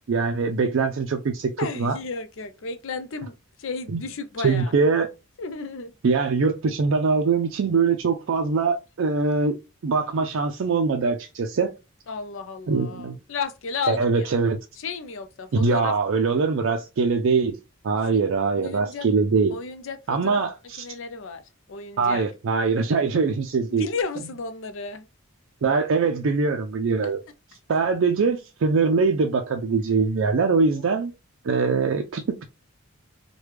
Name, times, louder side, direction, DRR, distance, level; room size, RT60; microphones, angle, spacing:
voice 1, 0.1-1.5 1.8-2.0 3.9-4.0 4.4-5.1 6.0-11.7 12.7-13.2 13.9-14.6 15.5-17.6 17.8-19.5 20.1-20.8 22.0-23.9 25.6-27.2 27.7-31.1 31.4-32.5, right 4 dB, 60° right, 0.4 m, -22 dB
voice 2, 1.6-4.7 5.4-5.9 12.1-14.3 14.8-15.9 18.1-18.2 18.5-19.1 19.5-20.4 20.8-21.4 21.7-22.2 23.7-25.1 27.0-27.1 30.7-31.0, left 4 dB, 60° left, 0.5 m, -33 dB
3.1 x 2.2 x 3.2 m
head